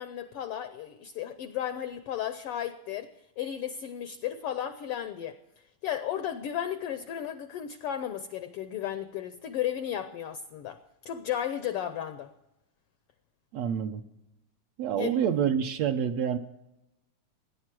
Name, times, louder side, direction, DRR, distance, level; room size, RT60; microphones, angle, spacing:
voice 1, 0.0-3.1 3.4-10.8 11.0-12.3 15.0-15.2, left 10 dB, 80° left, 11 dB, 1.3 m, -34 dB
voice 2, 13.5-14.0 14.8-16.4, right 8 dB, 75° right, 4 dB, 1.8 m, -27 dB
17.5 x 10.5 x 6.0 m, 0.94 s
omnidirectional pair, 3.3 m